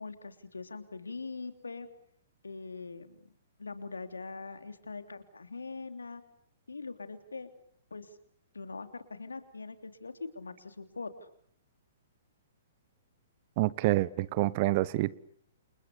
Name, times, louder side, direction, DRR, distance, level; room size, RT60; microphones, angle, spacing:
voice 1, 0.0-1.9 2.4-3.3 3.6-6.2 6.7-7.5 7.9-8.2 8.5-11.3, left 4 dB, 80° left, 3.2 m, -42 dB
voice 2, 13.6-15.1, right 18 dB, 40° right, 1.1 m, -27 dB
30.0 x 28.5 x 6.9 m
figure-of-eight pair, 115°, 0 cm